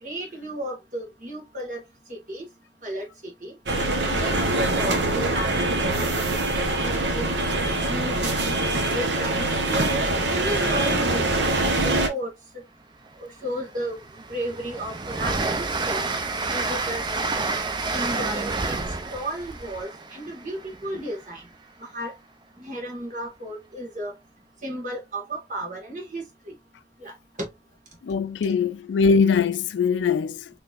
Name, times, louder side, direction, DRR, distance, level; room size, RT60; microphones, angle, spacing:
voice 1, 0.0-1.8 2.1-2.5 2.8-3.0 3.4-3.5 4.0-6.2 6.8-8.5 8.9-10.0 10.3-11.4 11.8-12.3 13.4-14.0 14.3-16.1 16.5-17.0 17.9-18.8 19.1-21.4 21.9-22.1 22.6-24.1 24.6-26.5 27.0-27.1 27.4-27.5, right 1 dB, 45° right, 1.6 m, -33 dB
sound 1, 3.7-12.1, right 2 dB, 80° right, 1.0 m, -24 dB
Train, 13.1-13.2 13.6-21.3, right 3 dB, 25° right, 0.4 m, -29 dB
voice 2, 28.0-30.5, left 5 dB, 85° left, 0.4 m, -22 dB
3.9 x 3.2 x 2.5 m
head